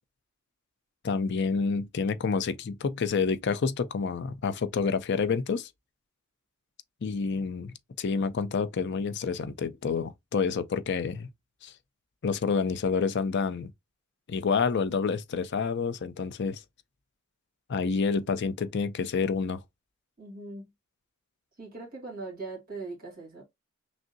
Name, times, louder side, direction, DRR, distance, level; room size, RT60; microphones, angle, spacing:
voice 1, 1.0-5.7 7.0-11.3 11.6-11.7 12.2-13.7 14.3-16.6 17.7-19.6, left 5 dB, 50° left, 0.5 m, -28 dB
voice 2, 20.2-20.7 21.6-23.4, right 3 dB, 45° right, 1.8 m, -40 dB
6.0 x 2.0 x 2.5 m
head